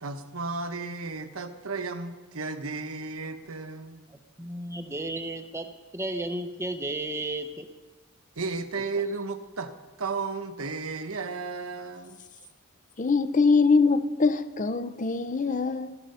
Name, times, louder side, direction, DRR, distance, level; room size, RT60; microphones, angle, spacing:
voice 1, 0.0-4.1 8.4-9.7 10.0-12.2, right 4 dB, 70° right, 1.1 m, -34 dB
voice 2, 4.1-7.7 8.8-8.9, right 1 dB, 10° right, 0.7 m, -34 dB
voice 3, 13.0-16.0, left 4 dB, 35° left, 0.6 m, -23 dB
14.5 x 14.0 x 5.6 m
head